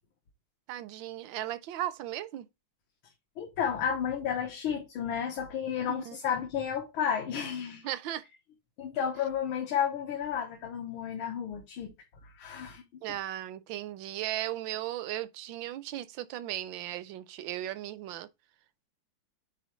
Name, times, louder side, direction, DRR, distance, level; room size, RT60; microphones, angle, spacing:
voice 1, 0.7-2.5 5.9-6.2 7.8-8.2 13.0-18.3, right 13 dB, 75° right, 1.3 m, -36 dB
voice 2, 3.4-7.9 8.8-11.9 12.2-12.8, left 8 dB, 85° left, 2.0 m, -32 dB
9.2 x 4.3 x 3.1 m
omnidirectional pair, 2.2 m